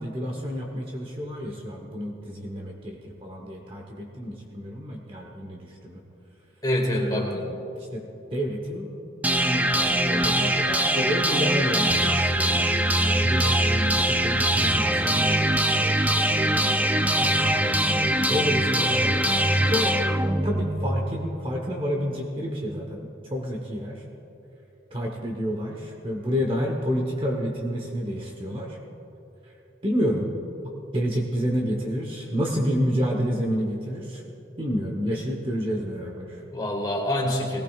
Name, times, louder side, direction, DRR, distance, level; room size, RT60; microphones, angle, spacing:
voice 1, 0.0-6.0 6.9-7.4 7.8-8.0 8.3-8.9 9.4-17.6 18.1-20.1 20.4-24.0 24.9-28.8 29.8-30.3 30.9-34.2 34.6-36.4, equal, 25° right, 0 dB, 1.0 m, -30 dB
voice 2, 6.6-7.4 36.5-37.6, left 1 dB, 20° left, -2 dB, 2.0 m, -26 dB
sound 1, 9.2-21.2, right 1 dB, 10° right, 0.3 m, -22 dB
19.5 x 17.5 x 2.4 m, 3.0 s
head